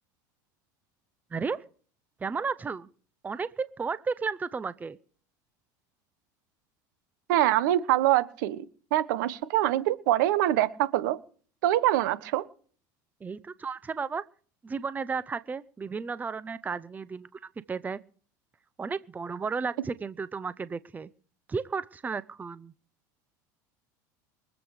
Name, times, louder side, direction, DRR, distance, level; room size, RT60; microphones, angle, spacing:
voice 1, 1.3-1.6 2.2-2.9 3.2-5.0 13.2-14.2 14.6-17.4 17.7-18.0 18.8-21.1 21.5-22.7, right 5 dB, 15° right, 16 dB, 0.7 m, -33 dB
voice 2, 7.3-8.6 8.9-11.2 11.6-12.4, right 14 dB, 80° right, 15 dB, 1.3 m, -24 dB
23.5 x 8.2 x 4.9 m, 0.43 s
supercardioid pair, 115°, 10 cm